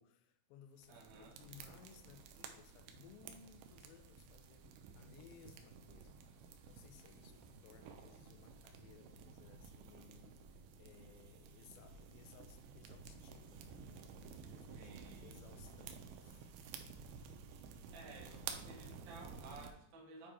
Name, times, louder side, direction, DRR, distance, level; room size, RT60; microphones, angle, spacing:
voice 1, 0.0-14.9 15.2-16.6, left 8 dB, 80° left, 6 dB, 2.4 m, -62 dB
sound 1, 0.8-19.7, right 6 dB, 85° right, 2.7 m, -53 dB
voice 2, 0.9-1.3 14.8-15.3 17.9-20.3, right 2 dB, 70° right, -2 dB, 1.1 m, -55 dB
8.6 x 2.9 x 4.8 m, 0.74 s
omnidirectional pair, 4.5 m